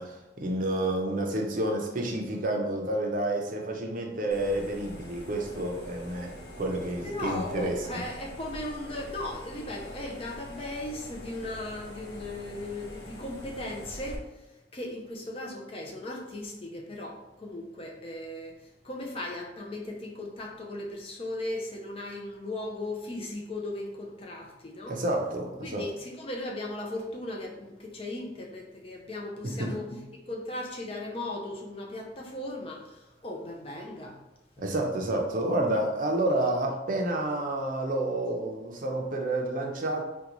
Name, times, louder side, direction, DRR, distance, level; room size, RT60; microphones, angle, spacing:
voice 1, 0.0-8.0 24.9-25.8 29.4-29.7 34.6-40.0, right 1 dB, 45° right, 1 dB, 0.5 m, -29 dB
sound 1, 4.3-14.2, left 1 dB, 75° left, 0.7 m, -44 dB
voice 2, 7.0-14.5 14.7-25.0 25.6-34.2, left 1 dB, 30° left, 0 dB, 0.5 m, -37 dB
3.8 x 2.2 x 3.0 m, 0.98 s
head